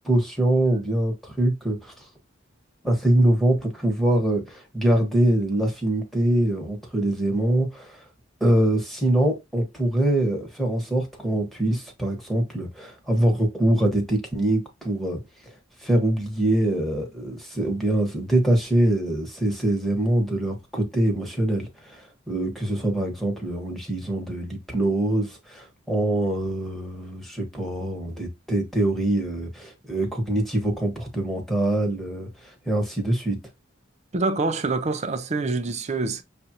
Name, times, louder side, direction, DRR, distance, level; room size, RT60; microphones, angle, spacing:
voice 1, 0.0-2.1 2.8-8.0 8.4-15.2 15.8-33.4, right 1 dB, ahead, 1.3 m, -24 dB
voice 2, 34.1-36.2, right 3 dB, 35° right, 0.5 m, -26 dB
6.6 x 2.5 x 2.8 m
head